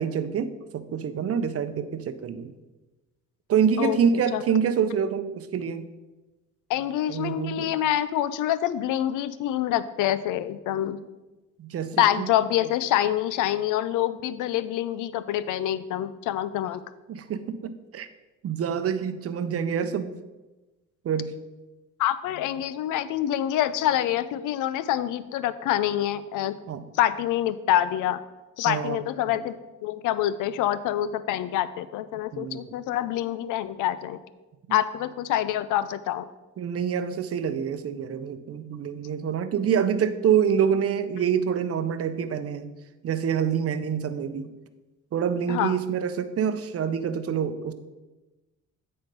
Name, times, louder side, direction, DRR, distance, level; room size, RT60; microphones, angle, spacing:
voice 1, 0.0-2.5 3.5-5.9 7.1-7.7 11.6-12.3 17.1-18.1 18.4-20.2 21.0-21.4 26.7-26.9 28.7-29.0 29.3-29.4 32.3-32.7 34.7-34.8 36.6-42.7 43.0-44.5 45.1-47.7, right 7 dB, 50° right, 11 dB, 0.7 m, -26 dB
voice 2, 6.7-11.0 12.0-16.8 22.0-26.6 26.9-28.2 28.6-34.2 34.7-36.3 45.5-45.8, left 12 dB, 90° left, 15 dB, 0.5 m, -26 dB
9.0 x 4.3 x 5.2 m, 1.1 s
cardioid pair, 90°, 30 cm